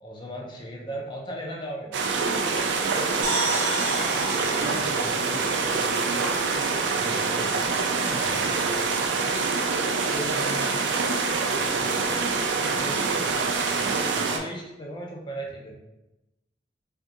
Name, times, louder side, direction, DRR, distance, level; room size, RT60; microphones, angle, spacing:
voice 1, 0.0-2.4 6.9-7.2 8.1-8.5 13.7-15.8, right 1 dB, 25° left, -1 dB, 0.5 m, -37 dB
sound 1, 1.9-14.4, right 4 dB, 90° right, 0.4 m, -25 dB
sound 2, 3.2-6.9, right 2 dB, 45° right, 0.9 m, -32 dB
voice 2, 4.5-6.2 6.9-7.7 10.1-11.9 12.6-13.4, equal, 55° left, -14 dB, 1.4 m, -39 dB
3.5 x 2.4 x 2.8 m, 0.95 s
head